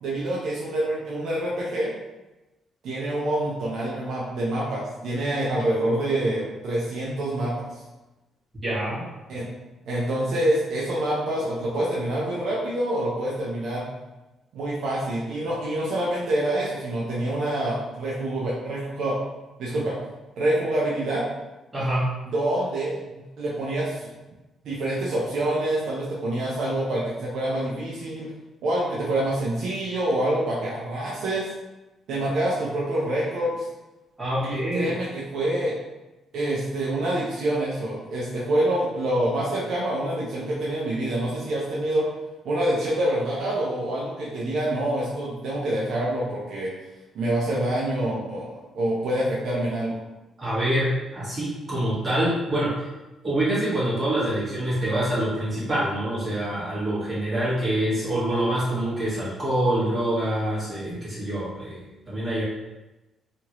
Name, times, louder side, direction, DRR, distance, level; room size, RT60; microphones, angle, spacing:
voice 1, 0.0-1.9 2.8-7.5 9.3-9.5 9.9-13.9 14.5-19.2 19.6-20.0 20.4-21.2 22.3-24.1 24.6-28.3 28.6-31.5 32.1-33.6 34.4-35.7 36.3-42.1 42.4-46.7 47.1-50.0, right 1 dB, 75° right, -5 dB, 0.6 m, -26 dB
voice 2, 8.6-9.0 21.7-22.1 34.2-34.9 50.4-52.9 53.2-62.4, right 1 dB, 30° right, -9 dB, 1.4 m, -25 dB
2.9 x 2.5 x 2.9 m, 1.1 s
cardioid pair, 90°, 0 cm